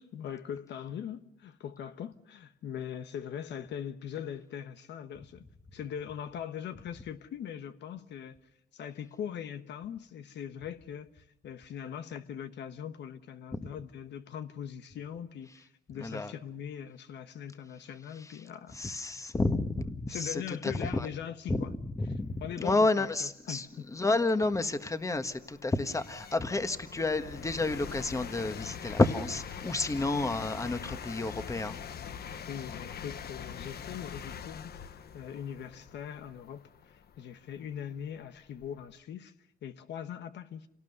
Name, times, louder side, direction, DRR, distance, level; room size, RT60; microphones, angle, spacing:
voice 1, 0.0-5.4 5.7-8.4 8.7-19.0 20.1-21.7 22.4-24.0 32.5-39.3 39.6-40.7, left 9 dB, 85° left, 1.2 m, -41 dB
voice 2, 15.9-16.3 18.2-18.4 18.7-21.1 21.5-31.8, left 2 dB, 15° left, 1.4 m, -30 dB
sound 1, 23.5-23.6 24.2-38.9, left 7 dB, 65° left, 1.2 m, -44 dB
28.0 x 18.5 x 6.7 m
cardioid pair, 100°, 18 cm